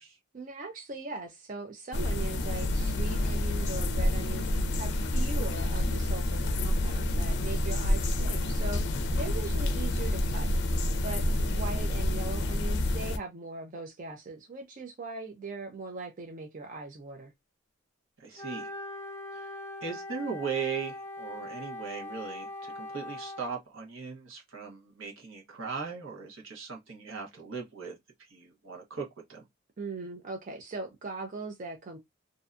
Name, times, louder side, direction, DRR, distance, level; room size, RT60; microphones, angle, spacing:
voice 1, 0.3-4.5 4.8-10.5 11.0-17.3 29.8-32.0, right 3 dB, 40° right, 0.5 m, -40 dB
sound 1, 1.9-13.2, left 1 dB, 55° left, 0.4 m, -28 dB
voice 2, 18.2-18.7 19.3-19.5 19.8-28.0 28.3-29.4, right 5 dB, 75° right, 1.0 m, -38 dB
Wind instrument woodwind instrument, 18.4-23.6, left 1 dB, 10° left, 0.6 m, -41 dB
2.6 x 2.2 x 2.4 m
head